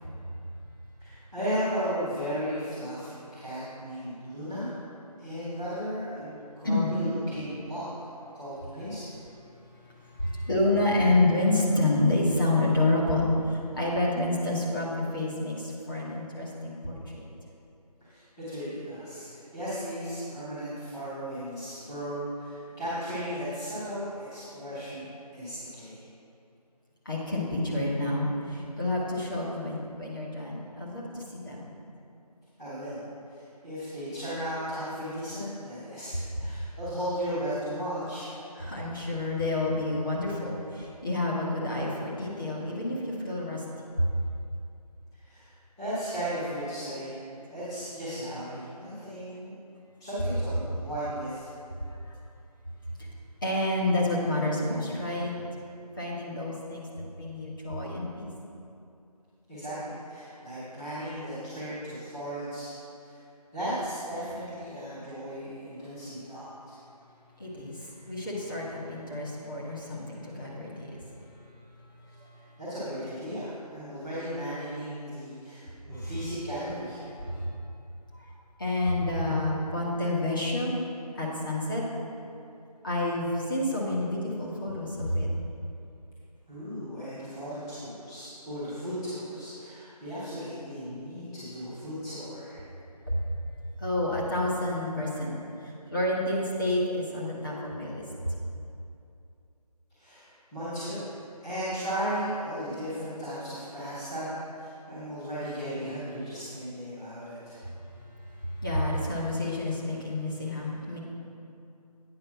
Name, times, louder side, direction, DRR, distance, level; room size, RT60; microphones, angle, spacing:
voice 1, 1.0-4.8 5.2-7.9 8.3-9.2 18.0-26.0 32.6-38.3 45.2-47.2 47.5-49.5 50.0-51.5 59.5-62.7 63.0-63.2 63.5-66.7 72.6-77.1 86.5-92.6 99.9-101.0 101.4-107.6, equal, 5° left, -16 dB, 1.2 m, -35 dB
voice 2, 9.8-17.2 27.0-31.7 38.5-44.1 51.8-52.1 53.0-53.1 53.4-55.3 56.0-56.9 57.2-58.3 67.4-71.0 72.0-72.5 75.9-76.1 77.2-77.5 78.1-78.3 78.6-80.8 81.1-81.8 82.8-85.3 93.1-93.2 93.8-95.3 95.6-98.4 107.9-111.0, left 2 dB, 30° left, -5 dB, 1.3 m, -29 dB
8.9 x 5.2 x 5.9 m, 2.6 s
figure-of-eight pair, 170°, 21 cm